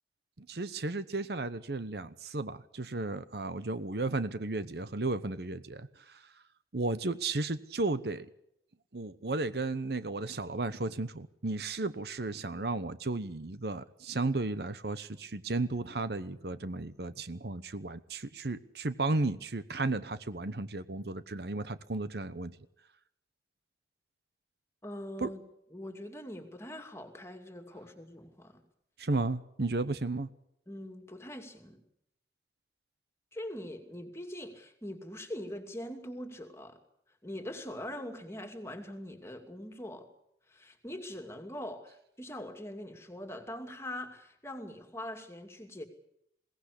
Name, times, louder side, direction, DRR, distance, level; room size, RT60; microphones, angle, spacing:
voice 1, 0.4-6.3 6.7-8.3 8.9-22.5 25.2-25.3 29.0-30.3, right 2 dB, 60° right, 13 dB, 0.9 m, -34 dB
voice 2, 24.8-25.4 25.7-28.6 30.7-31.8 33.3-36.8 37.2-40.1 40.5-45.8, left 1 dB, 15° left, 5 dB, 2.6 m, -42 dB
21.5 x 17.5 x 8.4 m, 0.77 s
head